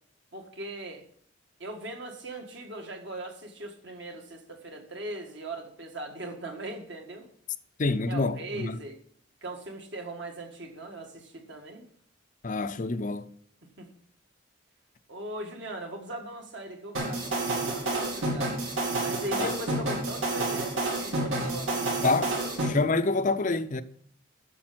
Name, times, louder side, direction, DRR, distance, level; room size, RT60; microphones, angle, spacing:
voice 1, 0.3-1.0 1.6-7.3 8.1-9.0 9.4-11.8 13.8-13.9 15.1-18.6 18.9-22.2 22.4-22.6, right 1 dB, 55° right, 1.8 m, -39 dB
voice 2, 7.8-8.8 12.4-13.3 19.4-19.5 22.0-22.3 22.6-23.8, left 3 dB, 40° left, 0.5 m, -27 dB
sound 1, 16.9-22.7, right 2 dB, 80° right, 3.2 m, -29 dB
8.4 x 6.9 x 6.1 m
head